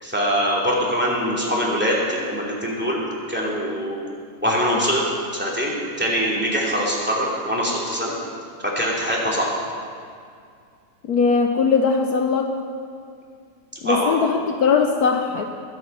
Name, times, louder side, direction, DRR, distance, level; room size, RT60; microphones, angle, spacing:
voice 1, 0.0-4.0 4.4-5.0 5.3-8.1 8.6-9.5 13.8-14.2, equal, 5° right, -4 dB, 2.6 m, -23 dB
voice 2, 11.0-12.6 13.8-15.4, left 5 dB, 70° left, 4 dB, 1.2 m, -20 dB
21.5 x 7.6 x 5.5 m, 2.3 s
omnidirectional pair, 1.8 m